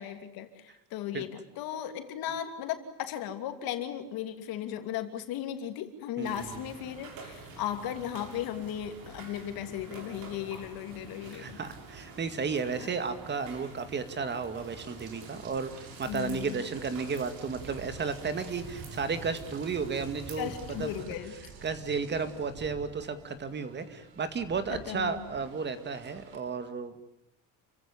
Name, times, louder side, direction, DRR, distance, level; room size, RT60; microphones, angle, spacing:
voice 1, 0.0-11.6 12.8-12.9 16.0-16.6 20.4-21.4 24.7-25.3, left 10 dB, 70° left, 8 dB, 3.0 m, -36 dB
voice 2, 6.2-6.5 11.3-20.5 20.8-20.9 21.6-27.0, right 5 dB, 30° right, 10 dB, 2.2 m, -33 dB
sound 1, 6.2-21.0, right 3 dB, 65° right, 7.3 m, -48 dB
Rain, 14.6-26.4, right 4 dB, 85° right, 6.4 m, -48 dB
30.0 x 16.0 x 10.0 m, 0.85 s
cardioid pair, 145°, 37 cm